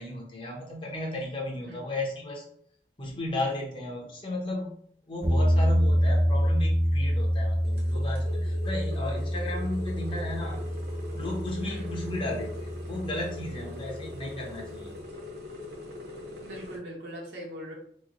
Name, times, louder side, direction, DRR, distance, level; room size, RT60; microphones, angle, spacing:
voice 1, 0.0-2.5 3.0-4.8 5.1-10.6 11.1-14.9, left 1 dB, 30° left, -1 dB, 0.7 m, -34 dB
sound 1, 5.2-14.2, equal, 10° right, 0.7 m, -27 dB
sound 2, 7.6-16.8, left 2 dB, 60° right, 0.8 m, -42 dB
voice 2, 11.6-12.0 16.4-17.7, equal, 80° right, -2 dB, 1.0 m, -41 dB
3.0 x 2.2 x 3.7 m, 0.64 s
head